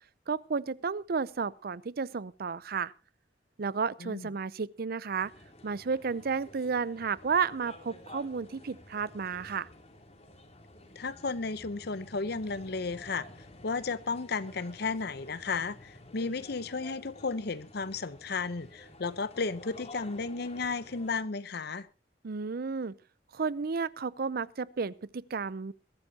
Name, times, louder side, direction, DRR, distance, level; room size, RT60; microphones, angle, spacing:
voice 1, 0.3-2.9 3.6-5.3 5.6-9.7 22.2-23.0 23.3-25.7, right 5 dB, 55° right, 0.6 m, -32 dB
sound 1, 5.1-21.2, left 2 dB, 40° left, 2.9 m, -51 dB
voice 2, 11.0-13.2 13.6-21.9, left 4 dB, 60° left, 0.8 m, -34 dB
22.0 x 12.5 x 2.8 m
head